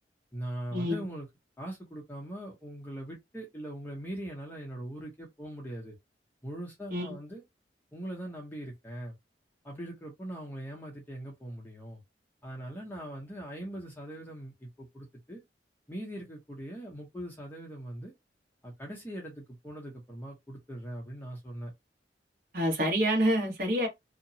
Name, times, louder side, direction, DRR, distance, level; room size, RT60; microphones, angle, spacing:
voice 1, 0.3-1.3 1.6-6.0 6.4-7.4 7.9-9.2 9.6-12.0 12.4-15.4 15.9-18.1 18.6-21.7, right 1 dB, 10° left, 0.7 m, -41 dB
voice 2, 22.5-23.9, equal, 50° right, 1.2 m, -27 dB
2.8 x 2.2 x 2.6 m
head